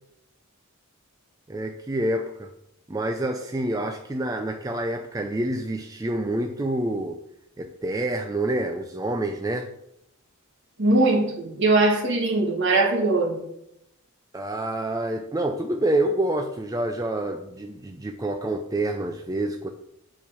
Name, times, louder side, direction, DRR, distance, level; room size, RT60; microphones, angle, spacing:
voice 1, 1.5-2.5 2.9-7.2 7.6-9.7 14.3-19.7, right 1 dB, 15° right, 5 dB, 0.4 m, -27 dB
voice 2, 10.8-13.4, right 2 dB, 55° right, 1 dB, 1.8 m, -21 dB
8.9 x 4.6 x 6.1 m, 0.79 s
head